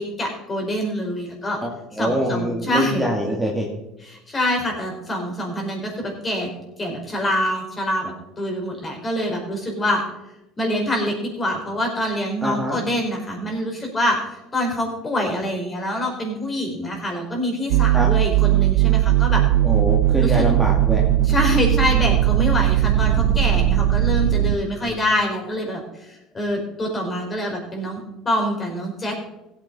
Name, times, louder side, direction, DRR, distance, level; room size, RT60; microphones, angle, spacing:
voice 1, 0.0-1.6 2.0-3.1 4.1-6.5 6.8-10.0 10.6-19.4 20.2-20.4 21.3-29.2, left 1 dB, 25° left, 1 dB, 4.8 m, -25 dB
voice 2, 1.6-3.7 12.4-12.8 17.9-18.1 19.6-21.0 24.8-25.0, equal, ahead, -3 dB, 2.4 m, -24 dB
sound 1, 17.7-24.6, right 13 dB, 85° right, 0.7 m, -18 dB
16.0 x 8.9 x 4.1 m, 0.92 s
supercardioid pair, 100°, 0 cm